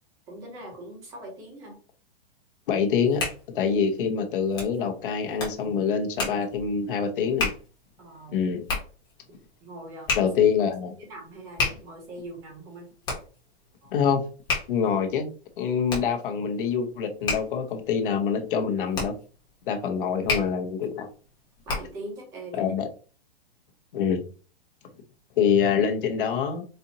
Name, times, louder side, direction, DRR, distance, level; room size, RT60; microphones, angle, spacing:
voice 1, 0.3-1.8 8.0-8.4 9.3-10.3 11.0-12.9 13.8-13.9 21.7-22.7, right 1 dB, 10° right, 1 dB, 0.4 m, -42 dB
voice 2, 2.7-3.2 3.5-7.5 8.3-8.6 10.2-10.9 13.9-14.2 14.7-15.3 15.6-19.1 19.7-21.1 22.5-22.9 23.9-24.2 25.4-26.6, left 7 dB, 55° left, 5 dB, 0.9 m, -25 dB
Hands, 2.8-22.1, left 3 dB, 15° left, 1.0 m, -34 dB
4.3 x 2.6 x 2.8 m, 0.37 s
hypercardioid pair, 165°, 32 cm